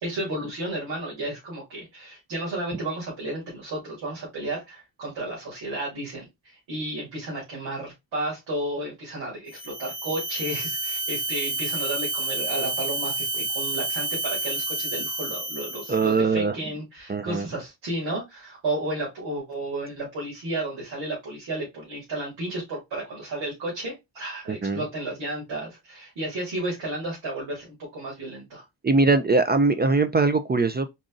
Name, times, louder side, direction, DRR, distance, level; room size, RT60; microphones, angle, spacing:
voice 1, 0.0-28.6, right 1 dB, 75° right, 2.4 m, -32 dB
sound 1, 9.5-16.1, right 2 dB, 25° left, 1.1 m, -30 dB
voice 2, 15.9-16.5 17.1-17.5 24.5-24.8 28.8-30.9, right 3 dB, 25° right, 0.4 m, -21 dB
4.1 x 2.5 x 3.7 m
cardioid pair, 75°, 45 cm